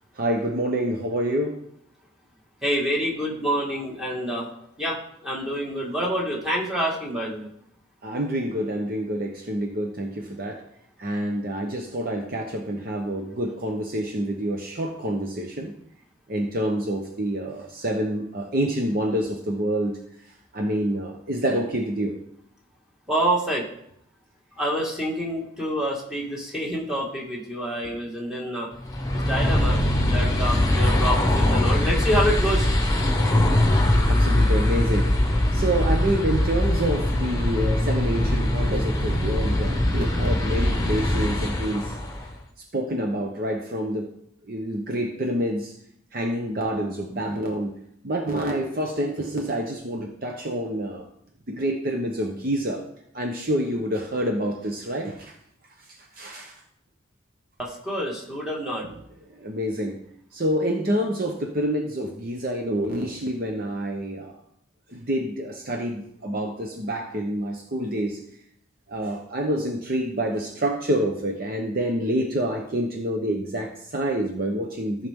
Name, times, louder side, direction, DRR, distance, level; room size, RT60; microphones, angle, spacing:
voice 1, 0.1-1.6 8.0-10.7 11.0-15.7 16.3-20.0 20.5-22.2 34.0-42.2 42.7-44.1 44.4-45.7 46.1-47.8 48.0-51.1 51.5-52.9 53.1-55.4 55.8-56.6 58.8-58.9 59.4-60.0 60.3-64.4 64.9-68.2 68.9-75.1, right 1 dB, 50° right, 2 dB, 0.9 m, -27 dB
voice 2, 2.6-4.5 4.8-7.5 23.1-23.7 24.6-28.7 29.1-32.7 57.6-58.9, equal, 5° right, -4 dB, 1.9 m, -27 dB
sound 1, 28.8-42.3, left 1 dB, 20° left, 1.2 m, -22 dB
14.5 x 5.6 x 3.7 m, 0.74 s
head